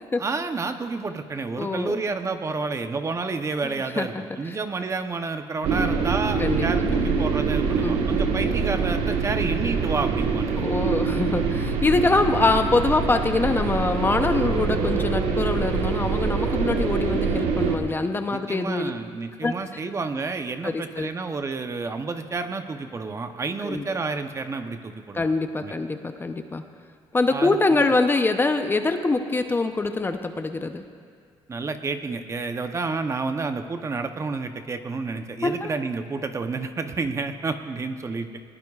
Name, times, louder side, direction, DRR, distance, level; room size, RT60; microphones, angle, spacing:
voice 1, 0.2-10.7 18.3-25.3 25.6-25.7 27.3-27.9 31.5-38.3, right 4 dB, 30° right, 7 dB, 0.8 m, -30 dB
voice 2, 1.6-2.0 3.6-4.1 6.4-6.6 6.9-7.0 7.8-8.1 10.5-18.9 19.4-19.6 20.6-21.1 23.6-23.8 25.1-26.6 27.1-30.8 35.4-35.7, left 3 dB, 20° left, 7 dB, 0.7 m, -24 dB
sound 1, 5.6-17.8, right 5 dB, 80° right, 1.4 m, -24 dB
20.5 x 18.5 x 2.4 m, 2.1 s
cardioid pair, 105°, 11 cm